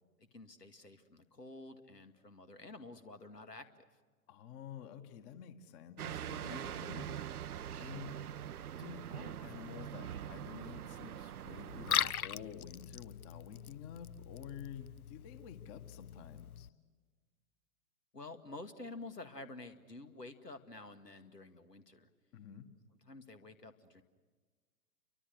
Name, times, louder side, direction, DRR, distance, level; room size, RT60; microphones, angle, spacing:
voice 1, 0.2-3.8 6.4-6.6 18.1-22.1 23.1-24.0, left 2 dB, 85° left, 8 dB, 2.2 m, -50 dB
voice 2, 4.3-7.4 7.8-8.1 8.8-16.7 22.3-22.7, left 8 dB, 30° left, 9 dB, 1.8 m, -50 dB
sound 1, 6.0-12.1, right 10 dB, 65° right, 0.8 m, -43 dB
Liquid, 11.7-16.7, left 10 dB, 65° left, 0.7 m, -40 dB
29.5 x 24.5 x 6.5 m, 1.4 s
figure-of-eight pair, 110°, 47 cm